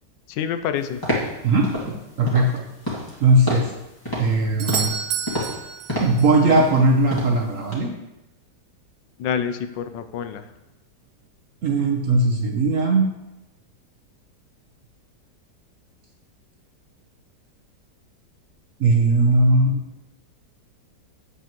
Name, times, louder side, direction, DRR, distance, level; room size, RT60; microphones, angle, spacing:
voice 1, 0.3-1.1 9.2-10.5, left 8 dB, 90° left, 10 dB, 1.3 m, -27 dB
sound 1, 1.0-1.3 1.6-1.9 2.3-2.5 2.8-3.2 3.5-3.7 4.0-4.4 4.7-5.0 5.3-5.6 5.9-6.2 6.5-6.8 7.1-7.4 7.7-7.8, equal, 10° left, 1.8 m, -28 dB
voice 2, 1.4-2.6 3.2-3.6 4.2-4.9 6.0-7.9 11.6-13.0 18.8-19.8, right 2 dB, 55° right, 1 dB, 1.1 m, -19 dB
Doorbell, 4.6-6.4 10.5-10.6, right 7 dB, 80° right, 1.3 m, -29 dB
8.3 x 7.5 x 3.0 m, 0.93 s
omnidirectional pair, 1.9 m